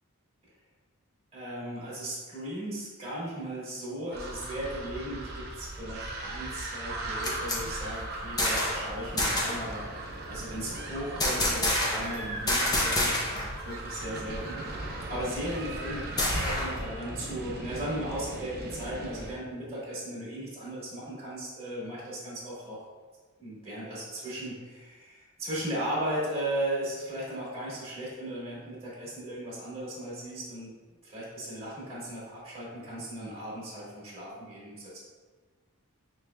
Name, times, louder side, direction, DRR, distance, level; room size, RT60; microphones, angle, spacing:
voice 1, 1.3-14.8 15.1-22.8 23.4-30.7 31.0-35.0, right 1 dB, 30° right, -7 dB, 1.4 m, -36 dB
sound 1, 4.1-19.3, right 2 dB, 45° right, 0.5 m, -38 dB
sound 2, 6.9-8.9 9.2-9.7 11.2-12.2 12.5-13.5 13.8-13.9 14.3-16.9, left 1 dB, 15° left, 0.6 m, -29 dB
5.1 x 3.1 x 2.2 m, 1.3 s
head